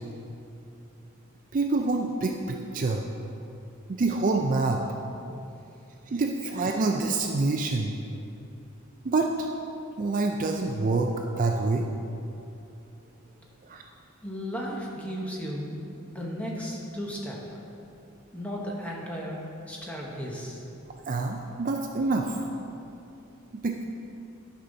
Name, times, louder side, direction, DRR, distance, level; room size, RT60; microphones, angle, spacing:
voice 1, 1.5-3.0 3.9-4.8 6.1-8.0 9.0-9.5 10.0-11.1 11.4-11.9 13.7-13.8 21.1-22.5 23.6-23.8, right 3 dB, 40° right, 3 dB, 0.4 m, -26 dB
voice 2, 14.2-15.8 16.1-17.6 18.3-19.4 19.7-20.6, equal, 5° left, -3 dB, 1.1 m, -35 dB
11.5 x 5.5 x 3.9 m, 2.7 s
head